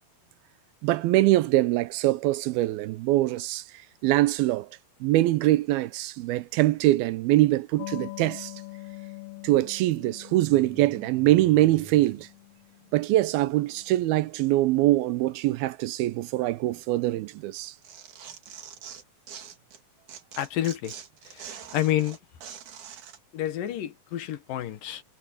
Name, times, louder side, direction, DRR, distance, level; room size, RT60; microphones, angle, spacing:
voice 1, 0.8-3.6 4.0-4.7 5.0-8.5 9.4-12.3 12.9-17.7, right 16 dB, 90° right, 2.6 m, -23 dB
sound 1, 6.5-6.8 7.6-7.7 8.0-8.1 9.4-9.5 10.1-12.4 12.9-13.0 13.8-13.9 14.2-14.6 15.2-15.4 16.7-17.5 18.5-18.7, right 4 dB, 40° right, 2.8 m, -51 dB
sound 2, 7.8-14.0, left 21 dB, 85° left, 4.9 m, -44 dB
Tearing, 17.5-19.8 20.1-23.2, right 8 dB, 60° right, 3.1 m, -44 dB
voice 2, 20.4-21.0 21.3-22.2 23.3-25.0, left 12 dB, 70° left, 2.9 m, -29 dB
omnidirectional pair, 4.3 m